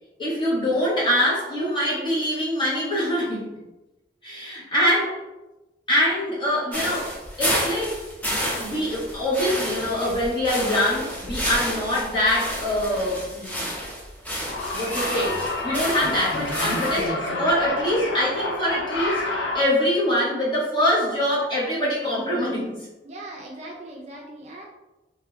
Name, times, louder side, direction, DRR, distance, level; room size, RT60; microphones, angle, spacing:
voice 1, 0.2-3.5 4.2-5.2 5.9-7.1 7.4-8.0 8.6-13.7 14.7-19.2 19.5-22.7, equal, 25° left, -8 dB, 1.2 m, -24 dB
sound 1, 6.7-17.1, equal, 10° left, 0.6 m, -30 dB
sound 2, 14.5-19.6, left 2 dB, 90° left, 0.7 m, -28 dB
voice 2, 23.0-24.7, right 1 dB, 40° right, -1 dB, 0.5 m, -39 dB
3.3 x 2.7 x 2.4 m, 1.0 s
head